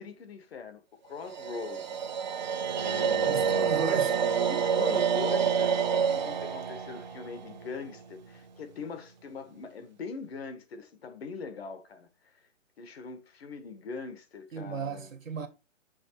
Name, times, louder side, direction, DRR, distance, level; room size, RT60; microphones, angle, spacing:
voice 1, 0.0-2.0 2.7-3.8 4.5-12.4 12.8-15.1, left 5 dB, 50° left, 1.3 m, -42 dB
sound 1, 1.3-8.4, right 7 dB, 35° right, 0.6 m, -28 dB
voice 2, 3.3-4.2 14.5-15.5, right 6 dB, 85° right, 1.6 m, -35 dB
6.4 x 3.5 x 4.5 m
hypercardioid pair, 155°, 38 cm